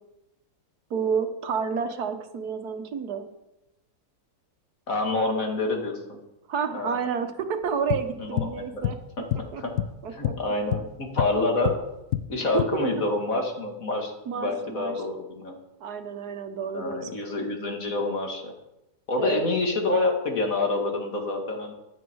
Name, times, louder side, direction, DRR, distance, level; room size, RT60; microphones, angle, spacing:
voice 1, 0.9-3.3 6.5-9.0 9.5-9.6 10.0-10.3 12.5-12.9 14.3-15.0 15.8-17.1 19.2-19.5, right 6 dB, 75° right, 7 dB, 1.7 m, -30 dB
voice 2, 4.9-6.2 6.7-6.9 8.2-8.8 9.2-9.8 10.1-11.8 12.3-15.5 16.7-18.5 19.1-21.7, left 2 dB, 60° left, 2 dB, 2.7 m, -27 dB
sound 1, 7.9-8.6 8.8-9.1 9.3-10.4 10.7-11.9 12.1-12.6, left 12 dB, 75° left, 1.1 m, -28 dB
15.5 x 10.5 x 4.7 m, 0.94 s
omnidirectional pair, 1.7 m